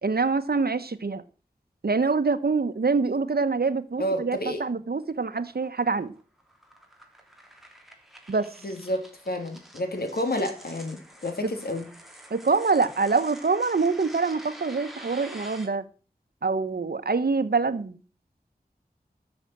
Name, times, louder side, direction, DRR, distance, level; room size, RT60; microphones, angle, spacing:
voice 1, 0.0-1.2 1.8-6.1 8.3-8.5 12.3-15.8 16.4-17.9, right 4 dB, 75° right, 1.2 m, -25 dB
voice 2, 4.0-4.6 8.6-11.9, left 1 dB, 75° left, 2.9 m, -30 dB
sound 1, 5.0-15.7, equal, ahead, 3.4 m, -47 dB
13.0 x 7.2 x 7.7 m
wide cardioid pair, 60°, 16 cm